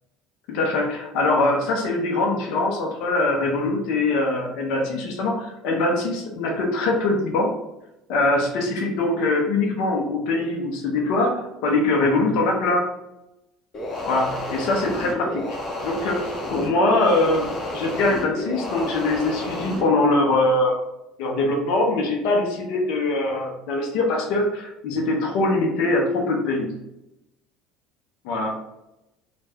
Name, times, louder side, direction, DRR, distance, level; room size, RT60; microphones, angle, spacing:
voice 1, 0.5-7.5 8.1-12.9 14.1-16.2 16.5-20.8 21.2-26.7 28.2-28.5, left 2 dB, 70° left, 1 dB, 0.7 m, -22 dB
sound 1, 13.7-19.9, left 1 dB, 45° left, 0.9 m, -31 dB
2.4 x 2.2 x 3.4 m, 0.90 s
hypercardioid pair, 80°, 0 cm